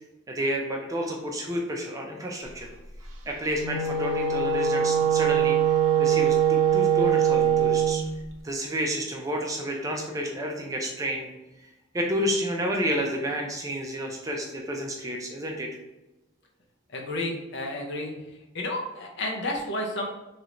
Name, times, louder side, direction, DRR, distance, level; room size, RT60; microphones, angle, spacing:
voice 1, 0.3-2.7 3.3-8.0 8.4-11.3 11.6-15.7, equal, 15° right, 0 dB, 0.3 m, -30 dB
Wind instrument woodwind instrument, 3.5-8.0, right 8 dB, 75° right, 0.5 m, -22 dB
voice 2, 16.9-18.1 18.5-20.1, left 1 dB, 55° left, 1 dB, 0.6 m, -31 dB
3.2 x 2.5 x 2.9 m, 0.99 s
head